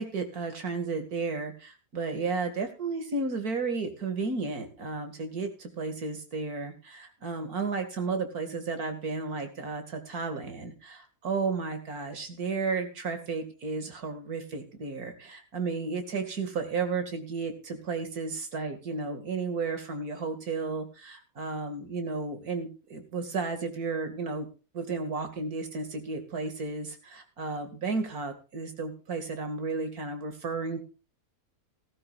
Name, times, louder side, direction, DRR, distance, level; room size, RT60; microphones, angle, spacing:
voice 1, 0.0-24.5 24.7-30.8, right 4 dB, 75° right, 7 dB, 2.7 m, -33 dB
16.5 x 14.5 x 2.5 m, 0.33 s
omnidirectional pair, 1.6 m